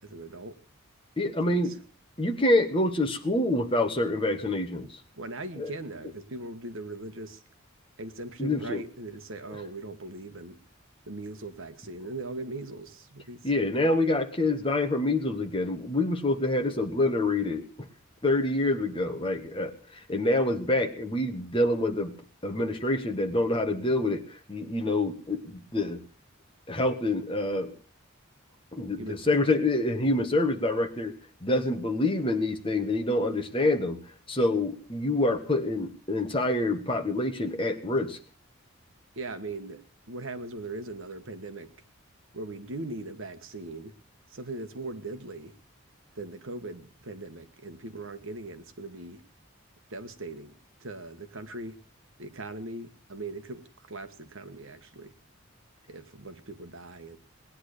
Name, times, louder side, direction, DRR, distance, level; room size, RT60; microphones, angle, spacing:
voice 1, 0.0-0.6 1.4-1.8 5.1-7.4 8.0-10.6 11.1-13.6 29.0-29.4 39.1-41.7 42.3-43.9 44.3-45.6 46.1-49.2 49.9-50.5 50.8-51.8 52.2-55.1 55.9-57.2, right 2 dB, 65° right, 1.4 m, -40 dB
voice 2, 1.2-1.7 2.2-5.0 5.6-5.7 8.4-8.8 13.4-17.6 18.2-19.7 20.1-22.1 22.4-26.0 26.7-27.7 28.7-31.1 31.4-34.0 34.3-38.2, left 2 dB, 25° left, 1.5 m, -26 dB
19.0 x 10.0 x 6.6 m
head